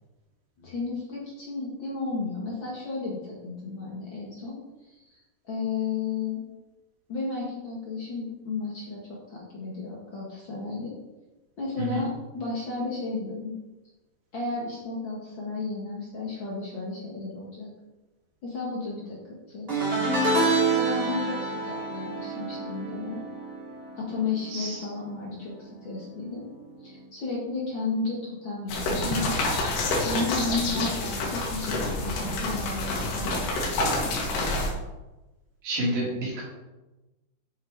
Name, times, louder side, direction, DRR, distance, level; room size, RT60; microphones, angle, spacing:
voice 1, 0.6-4.6 4.9-6.4 7.1-11.0 11.6-13.5 14.3-17.7 18.4-19.2 19.5-19.7 20.7-23.2 24.0-26.5 26.8-29.4 30.0-33.5, left 3 dB, 55° left, -4 dB, 1.4 m, -33 dB
sound 1, 19.7-25.1 25.3-25.7 26.9-27.0, right 3 dB, 20° right, 1.6 m, -28 dB
voice 2, 24.5-24.9 35.6-36.4, right 1 dB, 60° right, -4 dB, 3.6 m, -29 dB
sound 2, 28.7-34.7, left 2 dB, 80° left, 3.9 m, -28 dB
9.0 x 6.3 x 4.6 m, 1.1 s
omnidirectional pair, 4.8 m